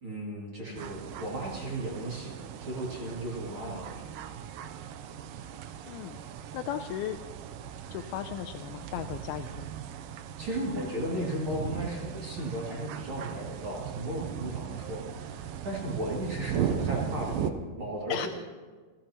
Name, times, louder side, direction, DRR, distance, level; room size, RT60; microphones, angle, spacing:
voice 1, 0.0-4.0 10.4-18.3, right 1 dB, 35° right, -3 dB, 2.7 m, -35 dB
sound 1, 0.7-17.5, right 8 dB, 85° right, 2.0 m, -38 dB
voice 2, 5.9-6.3 6.5-7.2 7.9-9.6 18.1-18.3, left 10 dB, 80° left, 7 dB, 2.3 m, -36 dB
28.5 x 14.5 x 3.0 m, 1.4 s
omnidirectional pair, 4.8 m